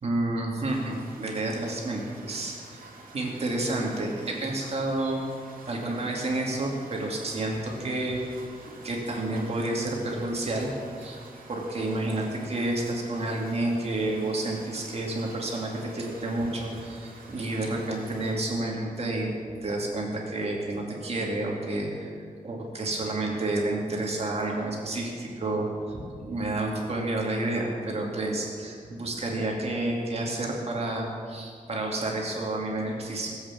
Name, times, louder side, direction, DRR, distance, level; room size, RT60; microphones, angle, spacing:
voice 1, 0.0-2.8 3.1-5.2 5.7-8.2 8.7-10.7 11.0-11.2 11.5-19.3 19.6-22.1 22.4-33.3, right 2 dB, 45° right, -1 dB, 2.4 m, -30 dB
sound 1, 0.7-18.4, right 3 dB, 85° right, 2.2 m, -49 dB
17.5 x 8.3 x 7.4 m, 2.2 s
wide cardioid pair, 160°, 14 cm